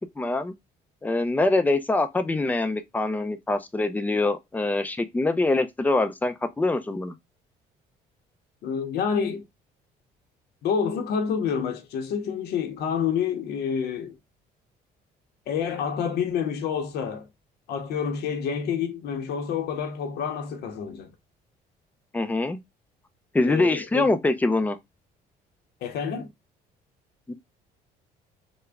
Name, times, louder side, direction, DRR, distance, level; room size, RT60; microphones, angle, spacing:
voice 1, 0.2-0.5 1.0-7.2 22.1-22.6 23.3-24.8 27.3-27.4, left 2 dB, 10° left, 0.4 m, -24 dB
voice 2, 8.6-9.4 10.6-14.1 15.5-17.3 17.7-21.1 23.4-24.0 25.8-26.3, left 7 dB, 70° left, 0.7 m, -28 dB
3.5 x 2.1 x 3.3 m
cardioid pair, 110°, 17 cm